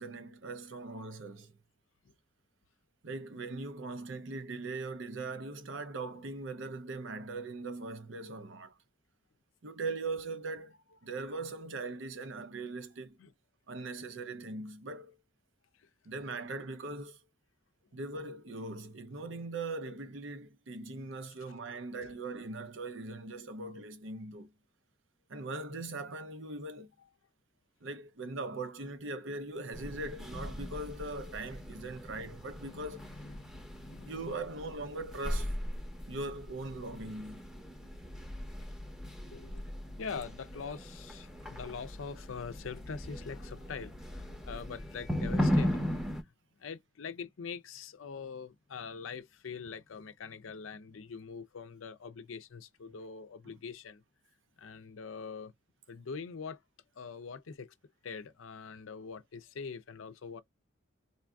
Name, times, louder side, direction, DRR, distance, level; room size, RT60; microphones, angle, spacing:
voice 1, 0.0-1.5 3.0-8.7 9.6-10.7 11.0-13.2 13.7-15.1 16.0-17.2 17.9-24.5 25.3-26.9 27.8-33.0 34.0-35.5 36.1-37.5 53.5-53.6, right 3 dB, 70° right, 0.6 m, -40 dB
voice 2, 21.5-21.8 31.9-32.0 32.6-34.2 39.3-46.2 46.6-54.0 54.6-55.5 55.9-56.6 57.0-57.7 58.0-60.4, left 5 dB, 80° left, 0.5 m, -44 dB
sound 1, 29.7-46.2, equal, 5° right, 0.7 m, -38 dB
3.9 x 2.5 x 2.3 m
head